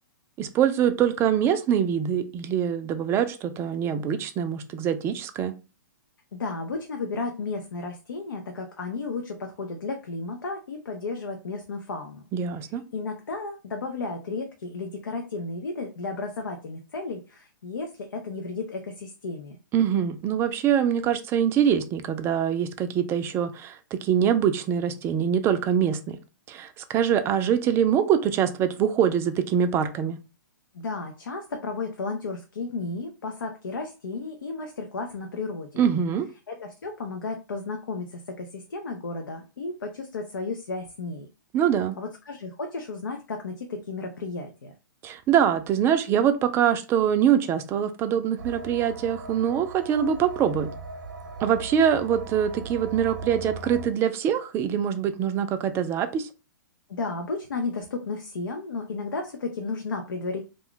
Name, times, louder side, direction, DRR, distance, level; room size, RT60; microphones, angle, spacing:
voice 1, 0.4-5.5 12.3-12.8 19.7-26.2 26.5-30.2 35.8-36.3 41.5-42.0 45.0-50.7 51.4-56.3, right 9 dB, 25° right, 9 dB, 0.4 m, -24 dB
voice 2, 6.3-12.2 12.7-19.6 30.7-35.8 36.5-41.3 42.0-44.7 56.9-60.4, left 3 dB, 85° left, 4 dB, 0.6 m, -33 dB
sound 1, 48.4-53.9, right 3 dB, 70° right, 0.6 m, -39 dB
2.5 x 2.2 x 3.6 m, 0.30 s
hypercardioid pair, 125°, 11 cm